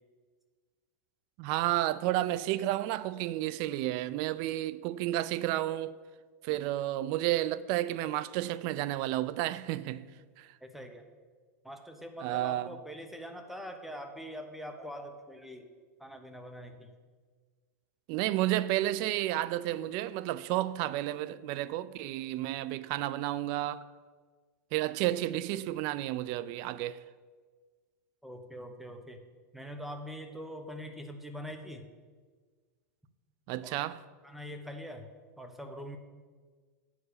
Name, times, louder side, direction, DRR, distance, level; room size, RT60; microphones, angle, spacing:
voice 1, 1.4-6.0 6.4-10.1 10.4-10.5 12.2-12.7 18.1-23.8 24.7-27.0 33.5-34.0, right 15 dB, 50° right, 0.4 m, -31 dB
voice 2, 10.6-11.0 11.6-15.7 16.0-16.9 28.2-29.2 29.5-31.9 33.6-33.7 34.2-35.1 35.4-36.0, equal, ahead, 0.8 m, -43 dB
8.7 x 4.8 x 6.5 m
supercardioid pair, 125°, 9 cm